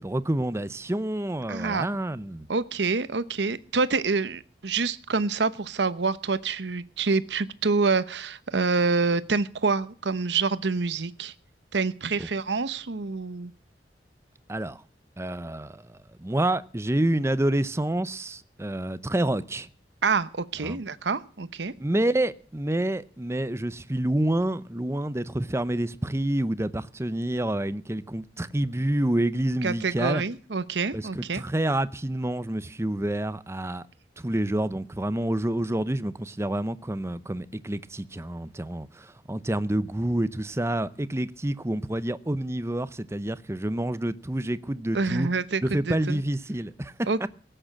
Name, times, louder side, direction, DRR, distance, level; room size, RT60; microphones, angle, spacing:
voice 1, 0.0-2.5 12.2-12.3 14.5-14.8 15.2-19.7 20.6-20.8 21.8-30.2 30.9-33.8 34.2-45.3 45.6-46.9 47.2-47.3, right 1 dB, 15° right, 0.6 m, -28 dB
voice 2, 1.5-1.9 2.5-11.3 11.7-13.5 20.0-21.7 29.6-31.4 44.9-46.2 47.1-47.3, right 4 dB, 80° right, 0.9 m, -27 dB
17.0 x 8.9 x 7.4 m
head